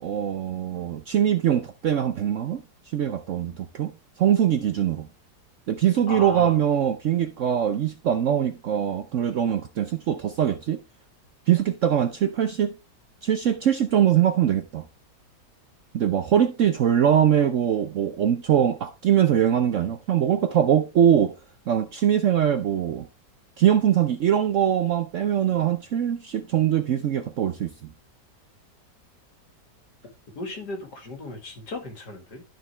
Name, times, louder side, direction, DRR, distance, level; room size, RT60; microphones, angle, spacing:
voice 1, 0.0-2.6 2.9-3.9 4.2-5.1 5.7-10.8 11.5-12.8 13.2-14.8 15.9-21.3 21.7-23.1 23.6-27.9, right 9 dB, 65° right, 0.8 m, -22 dB
voice 2, 6.1-6.6 30.4-32.4, left 2 dB, 70° left, 2.7 m, -36 dB
12.0 x 5.1 x 3.3 m
omnidirectional pair, 1.9 m